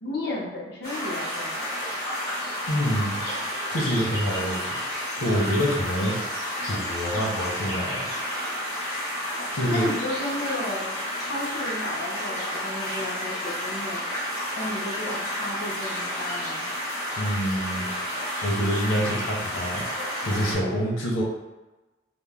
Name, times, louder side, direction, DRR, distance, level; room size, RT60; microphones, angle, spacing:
voice 1, 0.0-1.7 9.7-16.7, left 1 dB, 55° left, -3 dB, 0.8 m, -33 dB
sound 1, 0.8-20.5, equal, 15° left, 1.5 m, -31 dB
voice 2, 2.7-3.2 3.7-4.7 5.2-6.1 6.6-8.1 9.5-9.9 17.2-17.9 18.4-19.8 20.2-21.2, equal, 85° left, -2 dB, 0.8 m, -26 dB
3.0 x 2.1 x 3.4 m, 1.1 s
head